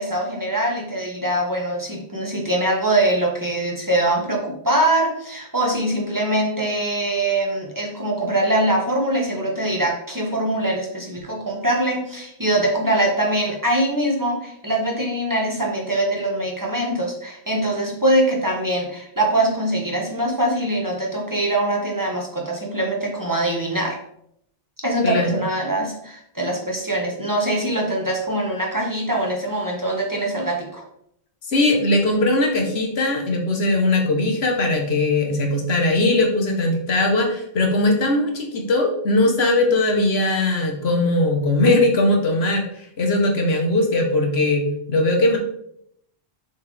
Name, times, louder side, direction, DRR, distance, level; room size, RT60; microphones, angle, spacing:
voice 1, 0.0-24.0 24.8-30.8, right 1 dB, 20° right, -2 dB, 1.1 m, -23 dB
voice 2, 25.0-25.4 31.5-45.4, left 2 dB, 75° left, 1 dB, 1.4 m, -20 dB
6.8 x 4.2 x 3.3 m, 0.73 s
omnidirectional pair, 1.1 m